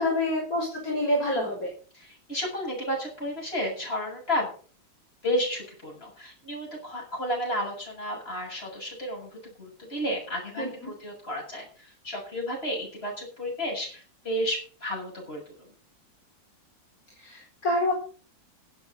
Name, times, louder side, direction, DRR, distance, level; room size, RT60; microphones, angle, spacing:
voice 1, 0.0-1.7 10.6-10.7 17.2-17.9, left 1 dB, 45° left, -3 dB, 4.9 m, -27 dB
voice 2, 1.9-4.5 5.2-11.7 12.0-15.4, equal, 30° left, -1 dB, 7.6 m, -32 dB
17.5 x 8.2 x 5.3 m, 0.40 s
omnidirectional pair, 2.2 m